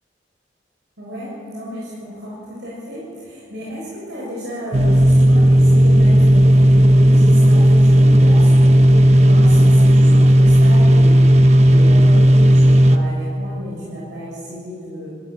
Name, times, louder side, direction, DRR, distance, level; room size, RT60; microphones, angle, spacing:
voice 1, 1.0-15.1, equal, 75° right, -6 dB, 6.8 m, -33 dB
sound 1, 4.7-13.0, equal, 40° right, 0.9 m, -11 dB
29.5 x 15.5 x 7.5 m, 2.3 s
head